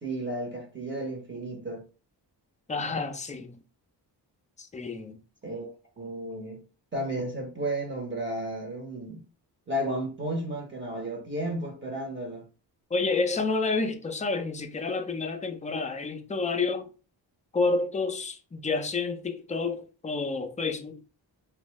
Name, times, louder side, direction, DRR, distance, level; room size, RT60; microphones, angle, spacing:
voice 1, 0.0-1.8 5.4-5.7 6.0-6.6 6.9-9.2 9.7-12.5, right 1 dB, 25° right, 0.8 m, -33 dB
voice 2, 2.7-3.6 4.6-5.2 12.9-16.9 17.5-21.0, left 3 dB, 20° left, 0.4 m, -29 dB
2.6 x 2.3 x 3.0 m
cardioid pair, 95°, 42 cm